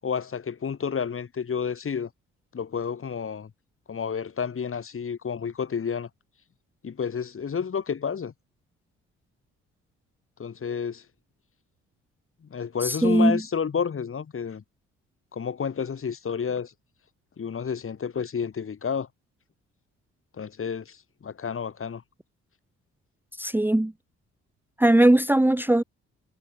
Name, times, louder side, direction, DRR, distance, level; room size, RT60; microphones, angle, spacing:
voice 1, 0.0-2.1 2.5-3.5 3.9-6.1 6.8-8.3 10.4-11.0 12.5-14.6 15.3-16.7 17.4-19.1 20.4-22.0, left 6 dB, 45° left, 7.6 m, -30 dB
voice 2, 12.8-13.4 23.4-23.9 24.8-25.8, right 1 dB, 5° right, 1.1 m, -20 dB
cardioid pair, 90°, 30 cm